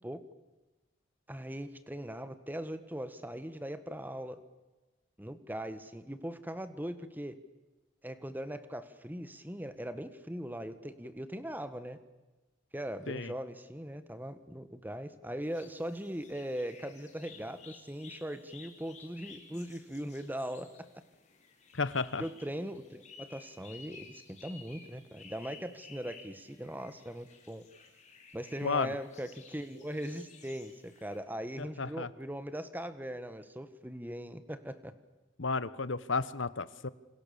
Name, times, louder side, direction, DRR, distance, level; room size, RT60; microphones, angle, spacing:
voice 1, 1.3-4.4 5.2-7.4 8.0-12.0 12.7-20.9 22.2-27.6 28.3-34.9, equal, 10° right, 11 dB, 1.6 m, -40 dB
sound 1, 15.4-31.2, left 5 dB, 35° left, 4.6 m, -55 dB
voice 2, 21.7-22.2 28.6-28.9 31.6-32.1 35.4-36.9, left 4 dB, 65° left, 17 dB, 1.1 m, -32 dB
27.5 x 27.0 x 7.2 m, 1.1 s
head